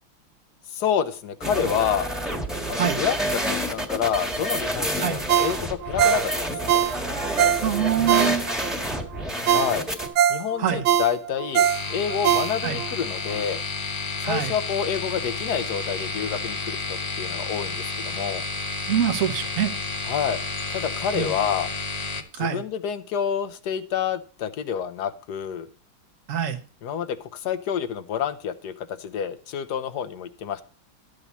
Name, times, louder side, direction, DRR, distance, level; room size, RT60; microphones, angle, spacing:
voice 1, 0.7-2.1 2.7-6.8 9.5-9.8 10.3-13.6 14.2-18.4 20.1-20.4 20.7-21.7 22.4-25.7 26.8-30.6, left 8 dB, 60° left, 11 dB, 1.2 m, -28 dB
sound 1, 1.4-10.1, equal, ahead, 1.3 m, -29 dB
Ringtone, 5.3-8.7 9.1-9.2 9.5-12.9 13.3-13.4, right 10 dB, 75° right, 1.5 m, -22 dB
voice 2, 7.6-8.4 10.6-10.8 12.6-12.8 14.2-14.5 18.9-19.7 21.1-21.3 22.3-22.6 26.3-26.6, right 9 dB, 50° right, 8 dB, 1.2 m, -24 dB
sound 2, 11.5-22.2, left 3 dB, 85° left, 0.3 m, -31 dB
12.5 x 8.3 x 4.2 m, 0.38 s
omnidirectional pair, 2.3 m